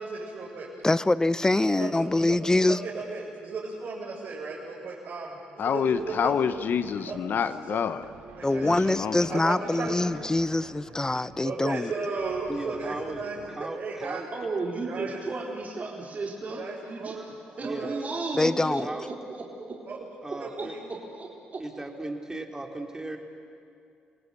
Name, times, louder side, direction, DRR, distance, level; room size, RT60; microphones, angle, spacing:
voice 1, 0.0-0.7 1.6-2.4 2.7-6.6 7.1-7.2 7.7-7.8 8.4-9.0 9.3-9.9 10.6-10.7 11.4-14.2 14.9-15.2 16.6-18.0 18.8-18.9 19.9-20.0 20.3-20.8, right 4 dB, 60° right, -7 dB, 6.9 m, -35 dB
voice 2, 0.8-2.8 8.4-11.9 18.4-18.9, left 2 dB, 15° left, 16 dB, 0.8 m, -24 dB
voice 3, 5.6-8.0 8.6-9.2, left 7 dB, 60° left, 11 dB, 1.0 m, -27 dB
sound 1, 5.8-7.6 7.9-9.7 10.0-11.8 12.1-13.8, right 4 dB, 85° right, 2.4 m, -50 dB
voice 4, 12.5-14.3 17.6-17.9 18.8-19.2 20.2-20.7 21.6-23.2, right 2 dB, 15° right, 2 dB, 3.2 m, -37 dB
voice 5, 14.3-17.2 17.6-18.8 19.3-19.4 20.5-20.6 21.1-21.3, right 3 dB, 40° right, -2 dB, 3.9 m, -34 dB
28.0 x 18.0 x 8.4 m, 2.5 s
supercardioid pair, 65°, 4 cm